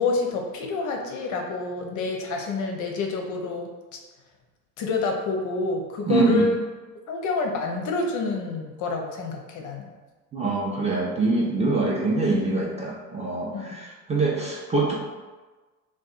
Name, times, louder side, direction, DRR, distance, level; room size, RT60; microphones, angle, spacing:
voice 1, 0.0-3.7 4.8-6.5 7.1-9.9 13.5-13.8, left 3 dB, 45° left, 2 dB, 0.5 m, -28 dB
voice 2, 6.1-6.4 10.3-14.9, right 3 dB, 15° right, -4 dB, 0.4 m, -24 dB
2.5 x 2.2 x 2.4 m, 1.3 s
hypercardioid pair, 65°, 43 cm